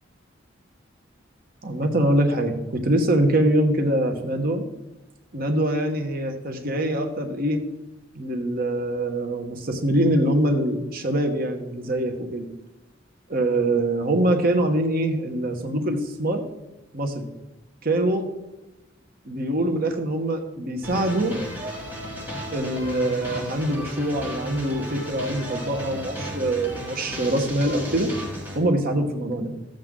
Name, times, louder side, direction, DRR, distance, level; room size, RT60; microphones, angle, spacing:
voice 1, 1.6-4.7 5.3-7.6 8.1-12.5 13.3-16.4 16.9-17.3 17.8-18.2 19.2-21.4 22.5-28.1 28.5-29.6, right 1 dB, 50° right, 4 dB, 1.3 m, -24 dB
sound 1, 20.8-28.6, equal, 10° right, 2.0 m, -34 dB
14.0 x 7.8 x 3.8 m, 0.97 s
head